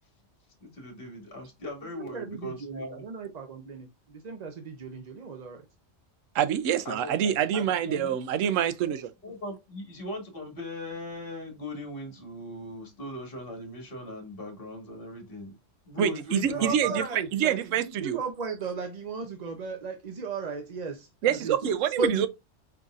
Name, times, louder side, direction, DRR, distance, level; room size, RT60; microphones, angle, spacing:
voice 1, 0.6-3.0 6.8-8.1 8.9-9.0 9.2-15.5 15.8-17.0, left 1 dB, 45° left, 1.6 m, -39 dB
voice 2, 1.9-5.6 16.5-22.3, right 4 dB, 45° right, 0.5 m, -35 dB
voice 3, 6.3-9.1 16.0-17.0 17.3-18.2 21.2-22.3, right 9 dB, 80° right, 0.9 m, -26 dB
4.7 x 3.9 x 2.4 m
omnidirectional pair, 1.3 m